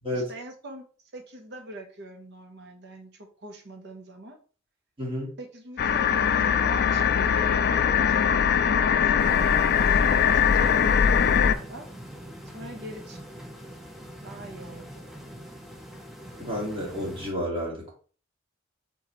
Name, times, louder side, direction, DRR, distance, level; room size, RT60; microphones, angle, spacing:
voice 1, 0.1-0.8 1.1-4.4 5.4-9.3 9.8-11.9 12.5-13.5 14.2-15.1, right 1 dB, 60° right, 4 dB, 0.9 m, -42 dB
voice 2, 5.0-5.3 16.4-17.9, equal, 25° right, -3 dB, 1.8 m, -31 dB
sound 1, 5.8-11.5, left 7 dB, 50° left, 0.4 m, -21 dB
sound 2, 9.2-17.3, equal, ahead, 0.6 m, -43 dB
4.2 x 3.9 x 3.0 m, 0.40 s
head